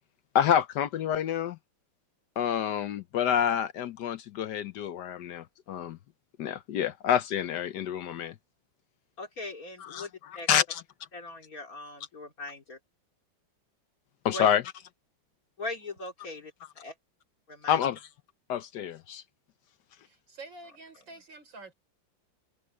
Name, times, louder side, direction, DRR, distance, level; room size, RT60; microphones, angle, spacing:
voice 1, 0.3-1.6 2.4-6.0 6.4-8.3 9.8-10.1 10.5-10.8 14.2-14.6 17.7-18.0 18.5-19.2, left 9 dB, 70° left, 1.3 m, -28 dB
voice 2, 9.2-10.5 11.1-12.8 14.3-14.5 15.6-16.9 17.5-17.8, left 2 dB, 50° left, 3.3 m, -40 dB
voice 3, 20.0-21.7, right 3 dB, 85° right, 5.1 m, -47 dB
omnidirectional pair, 2.0 m